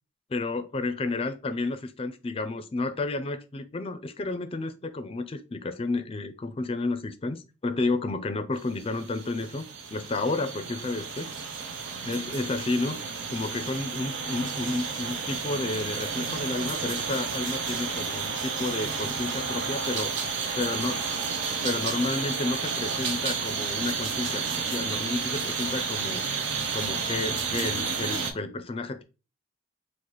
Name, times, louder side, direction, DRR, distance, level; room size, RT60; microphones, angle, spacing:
voice 1, 0.3-9.6 9.9-11.3 12.0-13.0 13.3-20.1 20.6-21.0 21.6-26.2 26.7-29.0, left 2 dB, 30° left, 0.4 m, -31 dB
sound 1, 8.7-28.3, right 5 dB, 75° right, 0.6 m, -31 dB
3.8 x 2.5 x 3.1 m
head